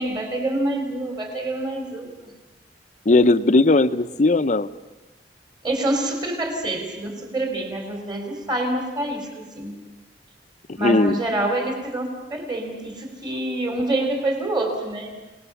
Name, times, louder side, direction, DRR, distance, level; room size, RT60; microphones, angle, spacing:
voice 1, 0.0-2.3 5.6-9.8 10.8-15.1, right 1 dB, 25° right, 3 dB, 3.9 m, -26 dB
voice 2, 3.1-4.7 10.8-11.2, left 2 dB, 45° left, 13 dB, 0.7 m, -17 dB
28.5 x 19.5 x 7.0 m, 1.1 s
head